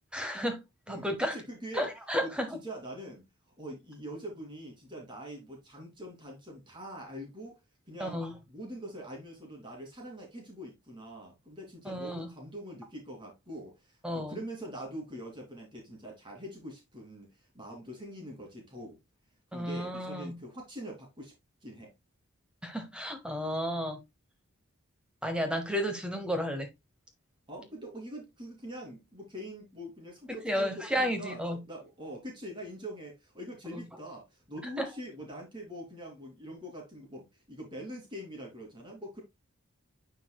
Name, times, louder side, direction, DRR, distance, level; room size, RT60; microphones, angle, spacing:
voice 1, 0.1-1.4 1.7-2.5 8.0-8.3 11.9-12.3 14.0-14.4 19.5-20.4 22.6-24.0 25.2-26.7 30.4-31.6 34.8-34.9, equal, 5° right, 0.9 m, -32 dB
voice 2, 0.9-1.9 2.2-2.3 2.6-3.2 3.6-7.6 7.9-8.2 8.5-19.0 19.5-21.3 21.6-21.9 27.5-39.2, equal, 20° right, 2.7 m, -44 dB
9.5 x 4.7 x 2.3 m
head